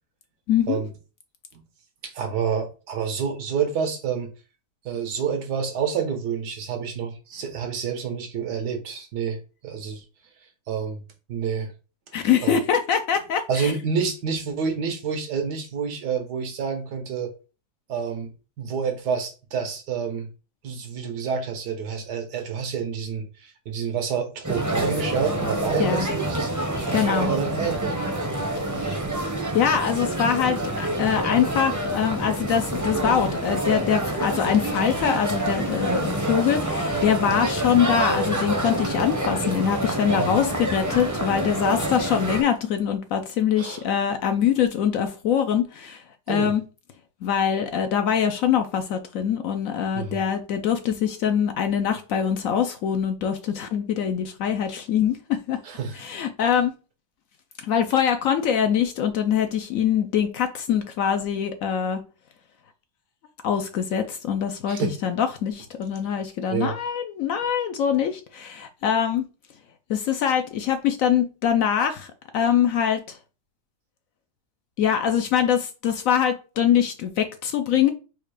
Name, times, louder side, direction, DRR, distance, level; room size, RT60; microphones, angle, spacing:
voice 1, 0.5-0.8 12.1-13.7 25.8-26.1 26.9-27.3 28.8-28.9 29.5-46.6 47.2-55.6 56.0-56.7 57.6-62.0 63.4-69.2 69.9-73.2 74.8-77.9, left 8 dB, 70° left, 0.9 m, -23 dB
voice 2, 2.0-4.3 4.8-9.4 9.6-10.0 10.7-11.0 11.3-11.7 12.4-12.6 13.5-17.3 17.9-20.3 20.6-26.5 26.9-28.0 28.7-29.0 40.2-40.4 43.6-43.8 46.3-46.5 49.9-50.2 55.6-56.0 64.7-65.0 66.5-66.7, right 6 dB, 85° right, 1.5 m, -28 dB
sound 1, 24.4-42.4, right 1 dB, 20° right, 0.5 m, -27 dB
4.4 x 2.4 x 4.7 m
omnidirectional pair, 1.7 m